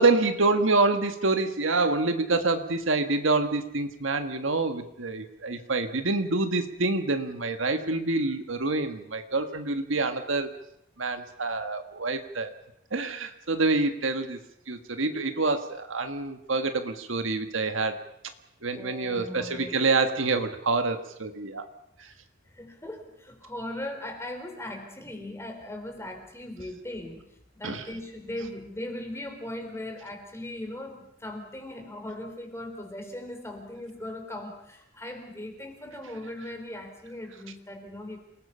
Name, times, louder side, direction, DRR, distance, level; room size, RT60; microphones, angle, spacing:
voice 1, 0.0-10.5 11.0-12.5 12.9-14.4 14.7-18.0 18.6-21.7 22.0-22.1 27.6-27.8, right 3 dB, 75° right, 7 dB, 1.7 m, -26 dB
voice 2, 18.7-19.8 22.0-22.1 22.5-27.2 27.6-38.2, left 1 dB, 15° left, 4 dB, 3.9 m, -39 dB
28.5 x 19.5 x 5.6 m, 0.77 s
head